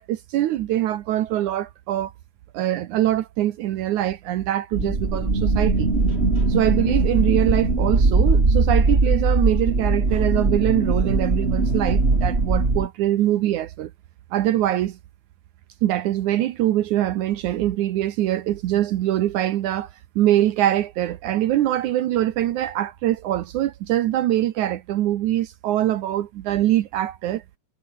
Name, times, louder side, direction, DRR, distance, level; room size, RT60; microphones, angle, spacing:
voice 1, 0.0-2.1 2.5-5.9 6.5-13.9 14.3-15.0 15.8-19.9 20.2-27.4, right 13 dB, 75° right, 2.4 m, -23 dB
sound 1, 4.7-12.9, right 3 dB, 20° right, 2.9 m, -20 dB
omnidirectional pair, 3.6 m